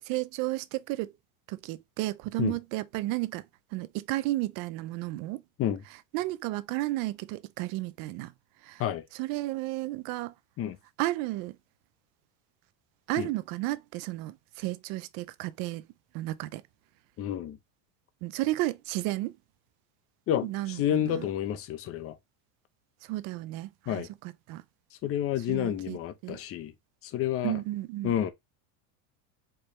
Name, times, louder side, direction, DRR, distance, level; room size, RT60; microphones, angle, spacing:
voice 1, 0.1-1.1 1.5-3.5 3.7-5.4 6.1-8.3 8.6-8.8 9.2-10.3 11.0-11.6 13.1-15.9 16.1-16.6 18.2-19.4 20.4-21.2 23.0-24.6 25.5-26.4 27.4-28.1, right 18 dB, 50° right, 0.5 m, -33 dB
voice 2, 17.2-17.6 20.3-22.2 23.9-24.1 25.0-26.7 27.0-27.6 28.0-28.3, left 11 dB, 30° left, 0.7 m, -29 dB
4.6 x 3.2 x 3.0 m
cardioid pair, 150°, 43 cm